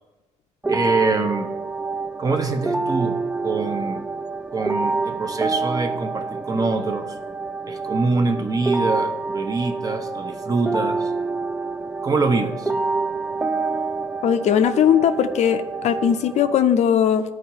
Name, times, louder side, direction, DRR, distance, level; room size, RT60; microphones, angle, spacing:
sound 1, 0.6-16.6, right 3 dB, 10° right, 0.3 m, -27 dB
voice 1, 0.7-1.5 2.2-4.1 4.5-7.1 7.7-11.1 12.0-12.7, right 3 dB, 25° right, 7 dB, 0.8 m, -24 dB
voice 2, 14.2-17.2, left 8 dB, 60° left, 9 dB, 0.5 m, -19 dB
12.0 x 4.6 x 2.9 m, 1.2 s
cardioid pair, 100°, 13 cm